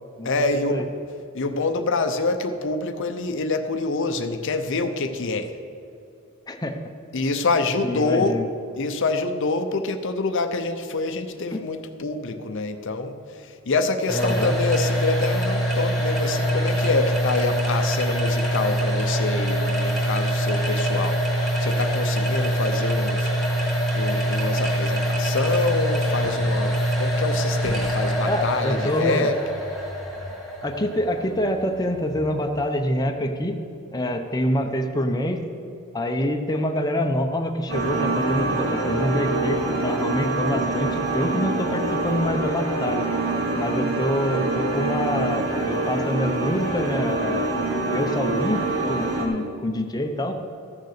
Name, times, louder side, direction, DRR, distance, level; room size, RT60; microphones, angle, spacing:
voice 1, 0.2-0.8 1.3-5.6 7.1-8.4 8.8-21.2 21.6-23.3 23.9-29.4, left 3 dB, 60° left, 8 dB, 0.7 m, -26 dB
voice 2, 6.5-6.8 7.8-8.4 11.5-11.6 14.1-14.5 28.2-29.3 30.6-33.6 33.9-35.4 35.9-43.1 43.6-47.5 47.9-50.4, equal, 20° left, 4 dB, 0.7 m, -26 dB
sound 1, 14.1-32.8, equal, ahead, 2.2 m, -24 dB
sound 2, 37.7-49.3, right 2 dB, 80° right, 1.9 m, -25 dB
14.0 x 6.7 x 6.6 m, 2.5 s
head